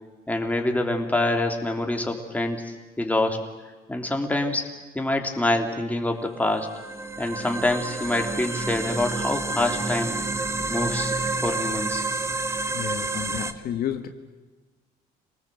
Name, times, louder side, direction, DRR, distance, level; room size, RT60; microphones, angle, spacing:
voice 1, 0.3-3.5 3.9-4.6 4.9-6.7 7.2-10.1 10.7-12.0, left 2 dB, 10° left, 3 dB, 3.3 m, -26 dB
sound 1, 6.5-13.5, right 3 dB, 15° right, 1.4 m, -29 dB
voice 2, 12.7-14.1, left 10 dB, 65° left, 7 dB, 1.7 m, -31 dB
27.5 x 19.5 x 7.9 m, 1.3 s
cardioid pair, 110°, 17 cm